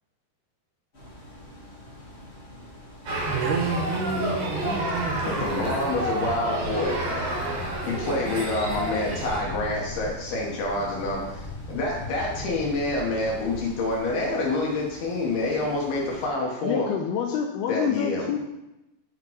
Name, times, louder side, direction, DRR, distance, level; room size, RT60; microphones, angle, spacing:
sound 1, 0.9-16.3, equal, 25° left, 1.3 m, -46 dB
sound 2, 3.1-9.4, right 1 dB, 50° right, 2.5 m, -29 dB
voice 1, 3.3-5.4, right 4 dB, 75° right, 3 dB, 2.4 m, -29 dB
sound 3, 4.7-14.3, left 3 dB, 45° left, 1.8 m, -40 dB
voice 2, 5.2-7.4 7.9-16.9 17.7-18.4, left 2 dB, 70° left, -2 dB, 2.8 m, -27 dB
voice 3, 16.6-18.4, left 8 dB, 85° left, 2 dB, 2.3 m, -27 dB
10.5 x 5.8 x 3.0 m, 0.93 s
omnidirectional pair, 5.1 m